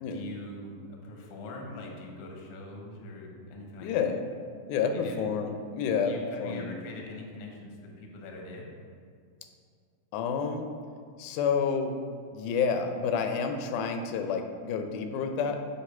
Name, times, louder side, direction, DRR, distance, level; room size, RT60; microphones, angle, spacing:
voice 1, 0.1-4.1 4.9-5.3 6.0-8.7, left 2 dB, 70° left, 1 dB, 1.4 m, -42 dB
voice 2, 3.8-4.2 4.7-6.8 10.1-10.7 11.2-12.0 12.3-15.6, left 6 dB, 90° left, 5 dB, 2.1 m, -29 dB
7.7 x 2.9 x 4.7 m, 2.2 s
omnidirectional pair, 3.5 m